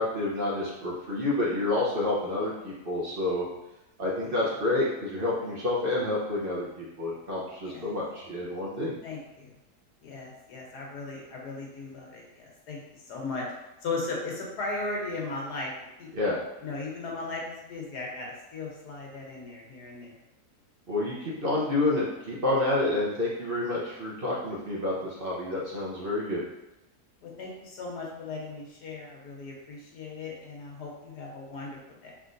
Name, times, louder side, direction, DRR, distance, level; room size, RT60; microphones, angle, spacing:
voice 1, 0.0-3.5 4.0-9.0 16.1-16.4 20.9-26.4, left 2 dB, 45° right, -6 dB, 0.9 m, -29 dB
voice 2, 9.0-9.6 10.0-13.5 13.8-15.7 16.0-16.1 16.6-20.2 27.2-32.1, left 3 dB, 85° left, -2 dB, 1.5 m, -37 dB
4.3 x 3.6 x 2.6 m, 0.94 s
omnidirectional pair, 1.7 m